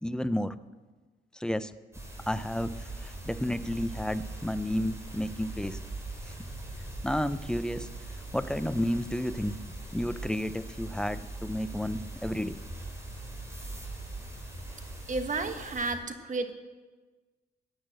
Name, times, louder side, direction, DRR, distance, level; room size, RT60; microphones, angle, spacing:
voice 1, 0.0-0.5 1.3-1.7 2.3-5.8 6.2-6.3 7.0-7.9 8.3-9.5 9.9-12.6, left 1 dB, 5° left, 13 dB, 0.6 m, -31 dB
sound 1, 1.9-15.9, right 2 dB, 15° right, 4.9 m, -41 dB
voice 2, 15.1-16.5, right 3 dB, 40° right, 7 dB, 1.6 m, -32 dB
15.5 x 10.0 x 7.7 m, 1.3 s
cardioid pair, 90°, 20 cm